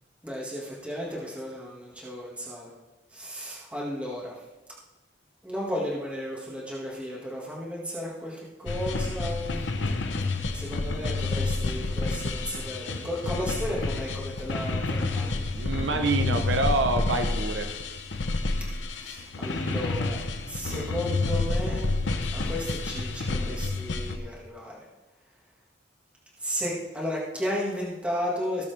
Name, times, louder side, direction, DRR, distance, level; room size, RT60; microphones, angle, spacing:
voice 1, 0.2-2.7 3.1-4.4 5.4-9.6 10.5-15.4 18.9-20.2 20.5-22.0 22.3-24.8 26.4-28.6, equal, 5° right, -5 dB, 2.0 m, -34 dB
sound 1, 8.7-24.2, left 3 dB, 80° left, 0.9 m, -29 dB
voice 2, 15.5-17.7, right 2 dB, 75° right, 6 dB, 1.0 m, -26 dB
18.0 x 7.1 x 3.4 m, 1.1 s
head